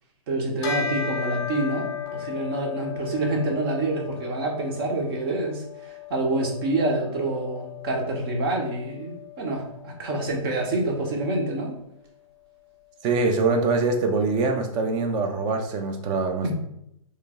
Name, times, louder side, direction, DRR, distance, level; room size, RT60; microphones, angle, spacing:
voice 1, 0.3-11.8 16.4-16.5, right 2 dB, 40° right, 0 dB, 1.3 m, -27 dB
Bell, 0.6-10.3, left 7 dB, 20° left, 0.9 m, -36 dB
voice 2, 13.0-16.5, right 3 dB, 25° right, 5 dB, 0.7 m, -23 dB
3.8 x 3.2 x 3.8 m, 0.78 s
figure-of-eight pair, 120°, 18 cm